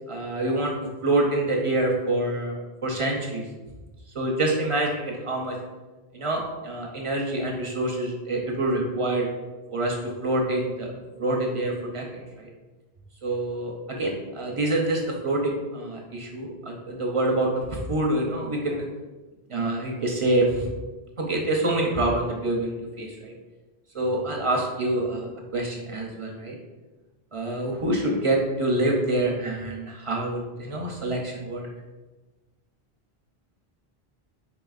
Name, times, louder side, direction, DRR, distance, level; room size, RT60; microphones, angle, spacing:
voice 1, 0.1-0.7 1.0-3.4 4.1-5.6 6.1-9.3 9.7-10.0 10.2-10.9 11.2-12.0 12.4-12.5 13.2-18.8 19.5-20.7 21.2-23.3 23.9-26.5 27.3-31.7, right 2 dB, 40° right, -1 dB, 0.5 m, -26 dB
3.9 x 3.9 x 2.4 m, 1.2 s
omnidirectional pair, 1.0 m